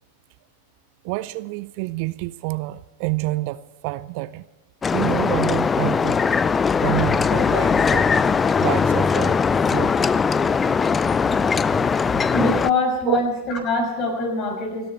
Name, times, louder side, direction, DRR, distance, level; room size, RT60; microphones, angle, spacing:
voice 1, 1.0-4.5 4.9-6.2 6.8-8.1 8.6-10.0 13.0-13.2, right 20 dB, 45° right, 17 dB, 0.5 m, -28 dB
sound 1, 4.8-12.7, left 5 dB, 15° left, 0.4 m, -20 dB
voice 2, 12.3-14.9, left 2 dB, 35° left, 3 dB, 5.9 m, -23 dB
29.5 x 10.5 x 4.3 m, 1.2 s
figure-of-eight pair, 90°, 0 cm